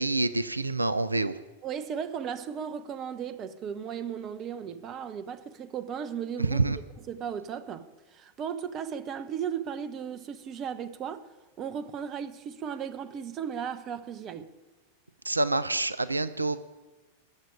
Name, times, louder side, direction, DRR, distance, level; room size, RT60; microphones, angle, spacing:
voice 1, 0.0-1.3 6.4-6.8 15.2-16.6, right 2 dB, 80° right, 0.5 m, -27 dB
voice 2, 1.6-6.6 7.1-11.3 11.6-14.5, right 8 dB, 30° right, 0.9 m, -36 dB
14.0 x 7.6 x 9.9 m
figure-of-eight pair, 90°, 0 cm